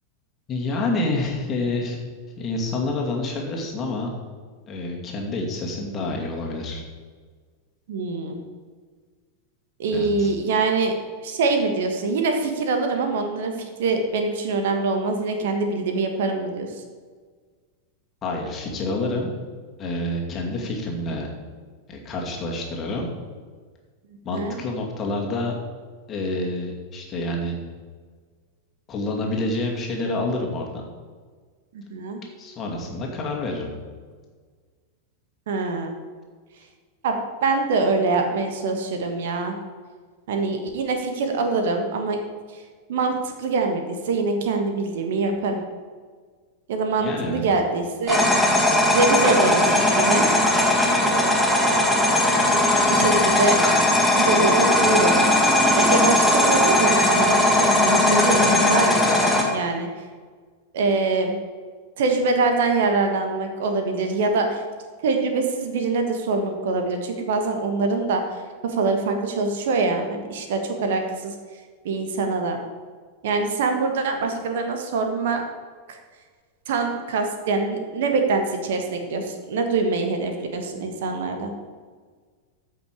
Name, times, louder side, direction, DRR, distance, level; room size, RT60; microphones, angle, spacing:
voice 1, 0.5-2.0 2.4-4.2 4.7-6.8 9.9-10.3 18.2-19.3 19.8-21.3 21.9-23.1 24.2-25.5 26.1-27.6 28.9-30.7 32.4-33.7 47.0-47.4, left 2 dB, 25° left, 0 dB, 2.3 m, -28 dB
voice 2, 7.9-8.4 9.8-10.9 11.2-16.7 24.3-24.6 31.7-32.2 35.5-35.9 37.0-39.6 40.3-42.2 42.9-45.6 46.7-48.2 48.9-50.3 52.9-53.6 54.2-55.2 55.7-58.4 58.7-59.1 59.5-59.9 60.7-61.3 62.0-64.6 65.0-71.3 71.8-72.6 73.2-75.4 75.9-76.0 76.7-81.5, right 3 dB, 55° right, 5 dB, 1.4 m, -24 dB
sound 1, 48.1-59.4, left 1 dB, ahead, 1.8 m, -18 dB
14.5 x 5.9 x 4.9 m, 1.5 s
figure-of-eight pair, 90°, 0 cm